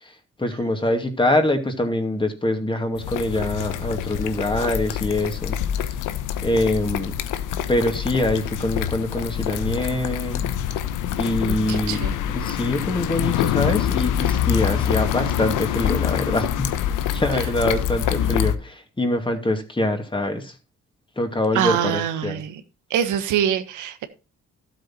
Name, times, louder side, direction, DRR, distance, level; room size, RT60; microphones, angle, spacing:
voice 1, 0.0-6.0 6.4-7.2 7.7-10.5 11.2-12.0 12.3-16.7 17.1-20.5 21.2-22.4, left 1 dB, 15° left, 6 dB, 2.5 m, -24 dB
sound 1, 3.0-18.6, left 10 dB, 90° left, 1.0 m, -25 dB
voice 2, 11.5-12.2 17.6-17.8 21.5-22.6 22.9-24.0, right 9 dB, 90° right, 8 dB, 1.5 m, -24 dB
12.5 x 8.1 x 4.3 m, 0.32 s
cardioid pair, 90°, 30 cm